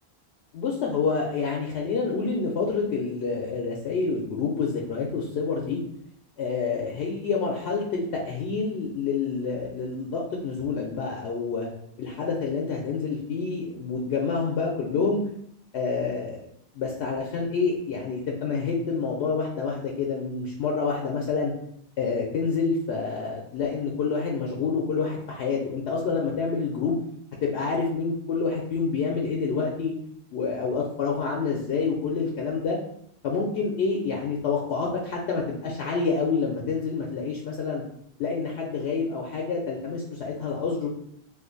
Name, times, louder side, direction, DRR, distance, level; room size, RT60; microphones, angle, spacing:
voice 1, 0.5-5.8 6.4-11.7 12.0-15.2 15.7-16.4 16.8-21.5 22.0-27.0 27.4-29.9 30.3-32.8 33.2-37.8 38.2-40.9, left 4 dB, 85° left, -1 dB, 0.8 m, -28 dB
2.5 x 2.4 x 3.8 m, 0.69 s
omnidirectional pair, 1.1 m